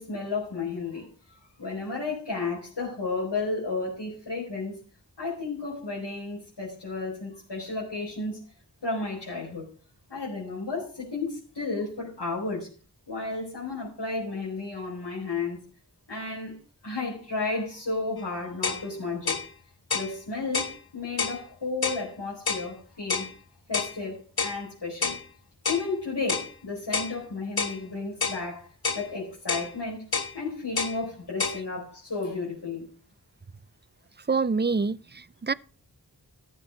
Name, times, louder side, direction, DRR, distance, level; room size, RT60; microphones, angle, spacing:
voice 1, 0.0-4.8 5.2-8.4 8.8-9.7 10.1-12.7 13.1-15.6 16.1-16.5 16.8-19.4 19.9-23.3 23.7-25.2 25.7-30.0 30.3-32.9, left 3 dB, 85° left, 4.8 m, -33 dB
sound 1, 18.2-18.3 18.6-18.8 19.3-19.5 19.9-20.1 20.5-20.8 21.2-21.4 21.8-22.0 22.5-22.7 23.1-23.3 23.7-23.9 24.4-24.6 25.0-25.2 25.6-25.9 26.3-26.5 26.9-27.1 27.6-27.8 28.2-28.4 28.8-29.1 29.5-29.7 30.1-30.3 30.8-31.0 31.4-31.6, left 5 dB, 65° left, 1.3 m, -28 dB
voice 2, 34.3-35.5, right 4 dB, 25° right, 0.5 m, -26 dB
13.5 x 7.6 x 5.3 m
wide cardioid pair, 60°, 40 cm